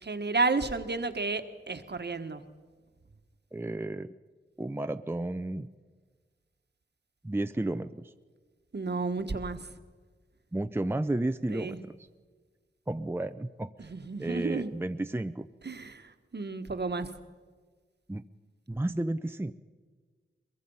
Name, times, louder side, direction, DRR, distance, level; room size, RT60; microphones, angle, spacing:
voice 1, 0.0-2.4 8.7-9.6 11.5-11.8 13.8-14.7 15.6-17.1, right 3 dB, 55° right, 9 dB, 1.3 m, -32 dB
voice 2, 3.5-4.1 4.6-5.7 7.2-8.0 10.5-11.8 12.9-13.9 14.2-15.5 18.1-18.3 18.7-19.5, right 1 dB, 10° right, 9 dB, 0.6 m, -32 dB
22.5 x 22.0 x 5.5 m, 1.5 s
wide cardioid pair, 70°, 20 cm